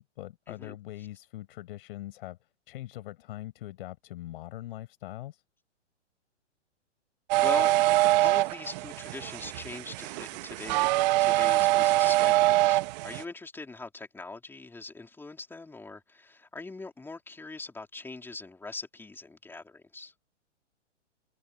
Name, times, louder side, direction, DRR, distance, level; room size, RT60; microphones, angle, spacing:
voice 1, 0.0-2.4 2.7-5.4, left 15 dB, 50° left, 6.0 m, -42 dB
sound 1, 7.3-13.2, right 19 dB, 35° right, 1.2 m, -24 dB
voice 2, 7.4-7.7 8.2-10.8 11.2-20.1, left 3 dB, 5° left, 3.9 m, -41 dB
hypercardioid pair, 130°, 36 cm